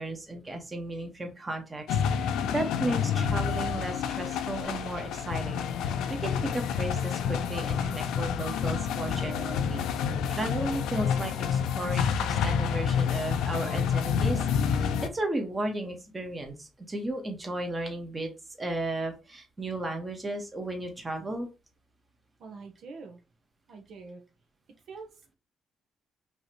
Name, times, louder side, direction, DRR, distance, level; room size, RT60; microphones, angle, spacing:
voice 1, 0.0-1.8 2.1-9.9 10.3-14.4 14.8-18.3 18.6-21.5, right 1 dB, 25° right, 3 dB, 1.3 m, -34 dB
sound 1, 1.9-15.1, left 7 dB, 85° left, 0.5 m, -28 dB
voice 2, 22.4-23.2 23.7-24.2 24.9-25.3, right 4 dB, 70° right, 4 dB, 1.0 m, -45 dB
5.4 x 3.0 x 3.0 m, 0.30 s
cardioid pair, 90°, 0 cm